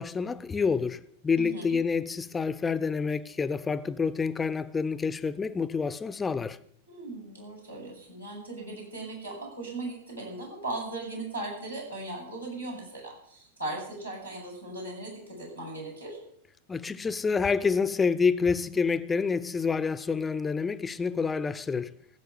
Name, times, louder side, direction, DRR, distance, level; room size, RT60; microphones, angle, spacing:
voice 1, 0.0-6.6 16.7-21.9, left 5 dB, 15° left, 0.7 m, -28 dB
voice 2, 1.4-1.8 6.9-16.2, right 2 dB, 90° right, 7.9 m, -38 dB
15.0 x 6.9 x 9.7 m
figure-of-eight pair, 90°, 0 cm